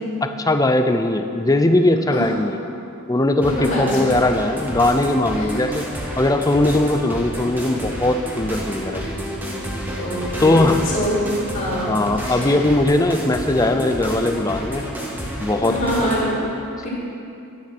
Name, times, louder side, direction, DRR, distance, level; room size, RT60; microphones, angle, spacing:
voice 1, 0.2-2.6 3.1-5.9 6.2-9.0 10.4-10.8 11.7-14.9 15.4-15.8, left 1 dB, 15° left, 7 dB, 0.5 m, -19 dB
voice 2, 3.4-4.1 5.4-5.6 10.0-11.2 11.5-11.9 12.2-12.6 15.6-16.2 16.8-16.9, equal, 35° left, -7 dB, 3.5 m, -25 dB
sound 1, 3.4-16.3, equal, 10° right, 1.6 m, -30 dB
12.0 x 9.7 x 6.0 m, 2.6 s
head